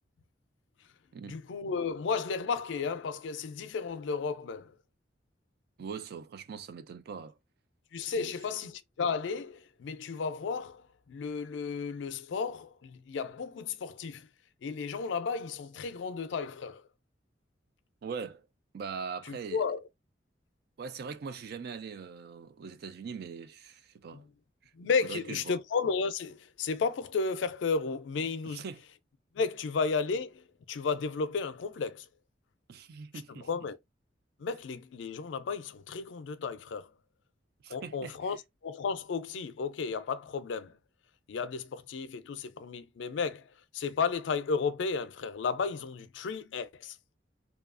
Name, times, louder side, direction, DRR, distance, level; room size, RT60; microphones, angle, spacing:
voice 1, 1.2-4.7 7.9-14.3 14.6-16.8 19.2-19.8 24.1-24.2 24.7-28.6 29.3-32.1 33.3-33.8 34.4-36.9 37.7-38.4 38.6-40.7 41.3-43.4 43.7-47.0, left 5 dB, 80° left, 0.4 m, -33 dB
voice 2, 5.8-7.4 8.2-8.3 18.0-18.5 18.7-19.6 20.8-24.3 25.1-25.6 28.5-28.8 32.7-33.5 37.6-38.4, right 5 dB, 60° right, 0.3 m, -41 dB
2.7 x 2.3 x 2.4 m
head